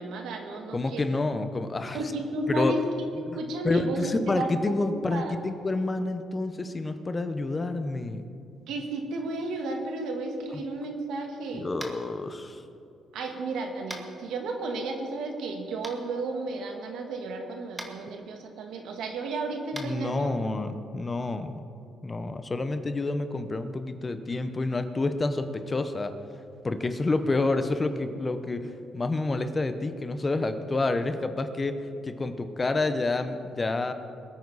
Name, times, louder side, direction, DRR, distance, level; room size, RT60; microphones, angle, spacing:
voice 1, 0.0-1.2 1.9-2.8 3.3-4.7 5.1-5.3 8.7-11.7 13.1-20.3, right 2 dB, 80° right, 3 dB, 1.8 m, -33 dB
voice 2, 0.7-2.0 2.5-2.8 3.3-3.4 3.6-8.2 11.5-12.6 19.7-21.6 22.0-26.1 26.6-33.9, left 2 dB, 25° left, 9 dB, 1.0 m, -29 dB
Tap, 11.8-12.0 13.9-14.1 15.8-15.9 17.7-17.9 19.7-19.9, right 1 dB, 15° right, 1.7 m, -38 dB
21.5 x 9.4 x 4.2 m, 2.5 s
cardioid pair, 90°, 0 cm